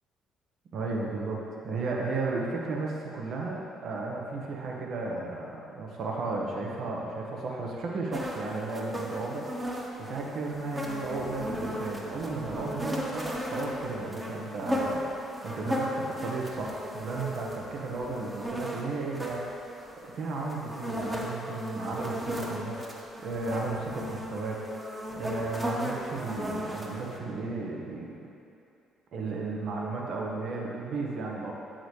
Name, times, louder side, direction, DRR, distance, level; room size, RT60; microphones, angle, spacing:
voice 1, 0.7-1.4 1.6-19.6 20.1-28.2 29.1-31.5, right 3 dB, 60° right, -1 dB, 1.1 m, -34 dB
sound 1, 8.1-27.2, equal, 20° right, 1.2 m, -36 dB
8.2 x 6.3 x 3.2 m, 2.7 s
hypercardioid pair, 55°, 0 cm